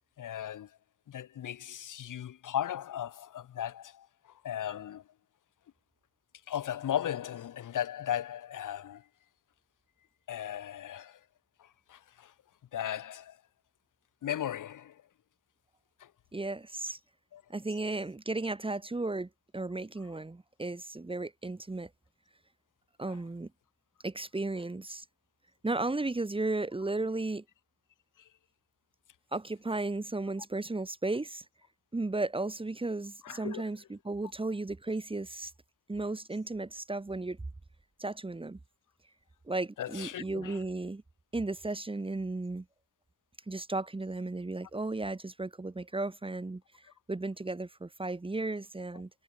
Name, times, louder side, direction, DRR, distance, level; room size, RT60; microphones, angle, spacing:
voice 1, 0.2-0.7 1.1-4.1 4.4-5.0 6.5-9.0 10.3-11.2 11.6-12.3 12.7-13.4 14.2-15.0 16.0-16.1 17.3-17.4 23.1-23.2 28.2-28.3 33.2-33.6 39.8-40.6, left 10 dB, 55° left, 4.1 m, -36 dB
voice 2, 16.3-17.0 17.5-21.9 23.0-23.5 24.0-25.0 25.6-27.4 29.3-31.4 31.9-35.5 35.9-37.4 38.0-38.6 39.5-41.0 41.3-42.6 43.5-46.6 47.1-49.1, right 2 dB, 15° right, 2.6 m, -34 dB
supercardioid pair, 85°, 37 cm